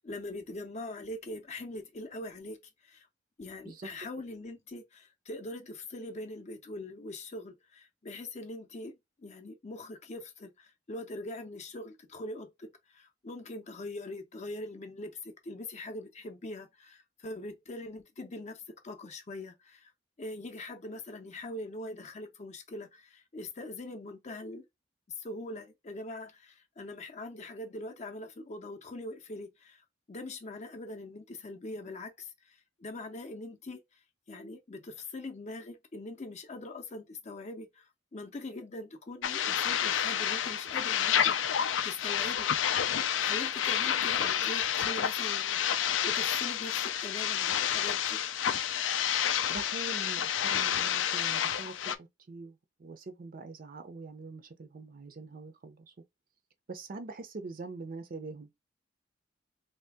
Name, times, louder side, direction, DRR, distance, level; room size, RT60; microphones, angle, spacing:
voice 1, 0.0-3.1 3.4-19.9 20.2-24.7 25.2-34.0 34.3-42.5 43.2-48.2, left 2 dB, 40° left, 0.5 m, -42 dB
sound 1, 39.2-52.0, left 9 dB, 90° left, 0.4 m, -29 dB
voice 2, 49.5-55.9 56.7-58.5, right 3 dB, 50° right, 0.5 m, -44 dB
3.2 x 2.7 x 3.4 m
head